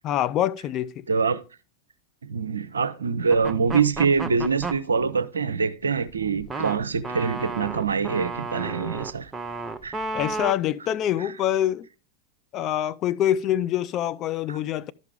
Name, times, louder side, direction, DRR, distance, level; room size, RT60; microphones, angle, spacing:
voice 1, 0.0-1.1 10.1-11.9 12.5-14.9, left 11 dB, 35° left, 0.4 m, -25 dB
voice 2, 1.1-1.4 2.2-9.3 9.8-10.0 11.2-11.3, right 5 dB, 70° right, 0.6 m, -24 dB
sound 1, 3.3-4.8 6.0-10.5, right 3 dB, 15° right, 0.7 m, -32 dB
12.0 x 5.8 x 3.4 m
figure-of-eight pair, 90°, 0 cm